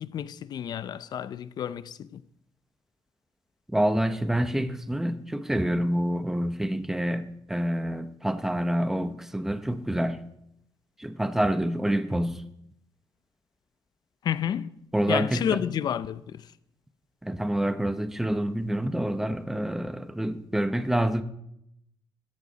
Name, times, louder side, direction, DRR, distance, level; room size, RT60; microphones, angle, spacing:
voice 1, 0.0-2.2 14.2-14.7 15.1-16.4, left 9 dB, 55° left, 0.6 m, -30 dB
voice 2, 3.7-10.2 11.0-12.4 14.9-15.6 17.2-21.2, right 1 dB, 5° right, 0.9 m, -27 dB
16.0 x 13.5 x 4.1 m
cardioid pair, 140°, 9 cm